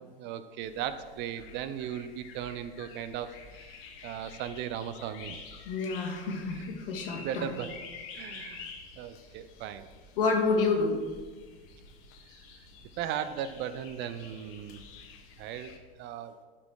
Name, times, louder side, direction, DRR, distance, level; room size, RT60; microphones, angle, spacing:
voice 1, 0.2-3.8 4.0-5.4 6.5-6.6 7.1-7.7 8.1-9.9 13.0-14.9 15.4-16.4, right 9 dB, 40° right, 12 dB, 0.6 m, -37 dB
sound 1, 0.6-15.8, left 5 dB, 45° left, 1.5 m, -49 dB
voice 2, 5.7-7.5 10.2-11.0, left 4 dB, 65° left, 0 dB, 2.2 m, -28 dB
13.0 x 5.1 x 4.8 m, 1.4 s
figure-of-eight pair, 80°, 30 cm